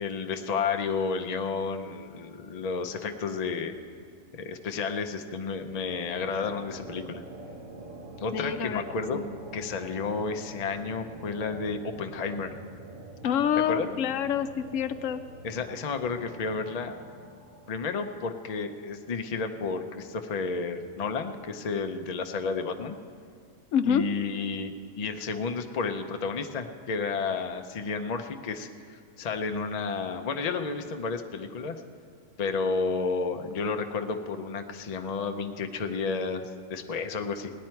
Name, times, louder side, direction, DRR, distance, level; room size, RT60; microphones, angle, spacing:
voice 1, 0.0-3.7 4.3-7.2 8.2-9.2 9.5-12.5 13.7-13.9 15.4-17.0 17.7-23.0 23.8-31.8 32.4-37.5, left 4 dB, 45° left, 6 dB, 0.5 m, -31 dB
sound 1, 5.6-18.8, right 1 dB, 40° right, 1.4 m, -46 dB
voice 2, 8.3-8.8 9.1-9.2 13.2-15.2 23.7-24.0, left 8 dB, 75° left, 10 dB, 0.9 m, -27 dB
18.0 x 10.5 x 4.5 m, 2.2 s
omnidirectional pair, 1.4 m